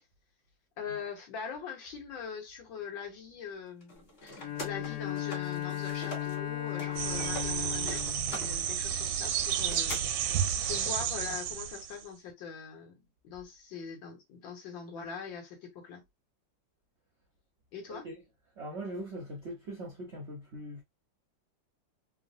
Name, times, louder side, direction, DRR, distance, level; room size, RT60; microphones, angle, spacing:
voice 1, 0.8-8.0 8.3-16.0 17.7-18.1, left 6 dB, 75° left, 1.7 m, -42 dB
sound 1, 3.8-6.4 6.7-10.0, left 1 dB, 40° left, 1.0 m, -43 dB
Bowed string instrument, 4.4-9.5, left 12 dB, 55° left, 1.2 m, -37 dB
sound 2, 7.0-12.0, right 9 dB, 85° right, 1.4 m, -31 dB
voice 2, 17.9-18.3 18.6-20.8, right 1 dB, 65° right, 0.6 m, -41 dB
3.6 x 2.0 x 2.5 m
omnidirectional pair, 2.1 m